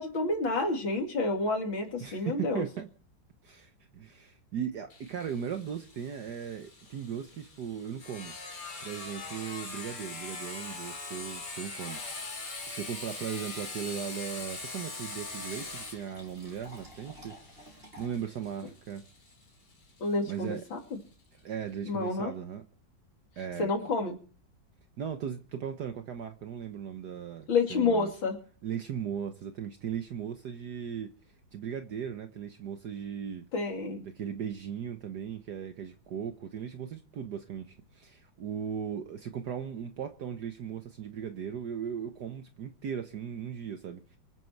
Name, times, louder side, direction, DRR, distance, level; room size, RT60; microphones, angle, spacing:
voice 1, 0.0-2.7 20.0-20.8 21.9-22.3 23.6-24.2 27.5-28.4 33.5-34.0, left 3 dB, 70° left, 3.6 m, -29 dB
voice 2, 2.0-2.9 3.4-8.3 8.8-12.2 12.7-19.0 20.2-20.6 21.4-22.6 23.4-23.7 25.0-28.1 28.6-31.1 31.5-33.4 34.1-44.2, right 8 dB, 60° right, 1.4 m, -38 dB
Sawing, 4.9-20.3, left 3 dB, 55° left, 3.7 m, -42 dB
Fill (with liquid), 14.3-18.3, equal, 30° right, 5.0 m, -53 dB
25.0 x 9.4 x 4.6 m
omnidirectional pair, 2.2 m